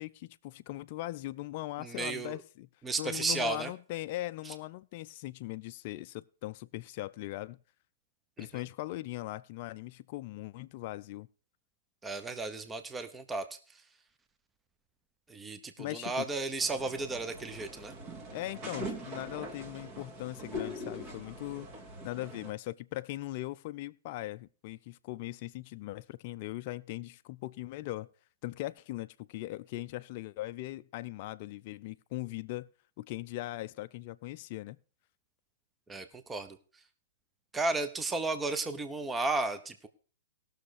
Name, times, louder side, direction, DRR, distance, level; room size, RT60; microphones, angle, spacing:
voice 1, 0.0-2.7 3.0-7.6 8.4-11.3 15.8-16.3 18.3-21.7 22.0-28.1 28.4-32.7 33.0-34.8, left 17 dB, 45° left, 0.4 m, -40 dB
voice 2, 1.8-2.4 2.8-3.7 4.5-4.6 8.4-8.5 12.0-13.5 15.3-17.9 35.9-36.6 37.5-39.9, right 3 dB, 10° right, 0.9 m, -33 dB
sound 1, 16.6-22.5, equal, 35° right, 2.3 m, -42 dB
17.0 x 6.5 x 4.8 m
hypercardioid pair, 120°, 0 cm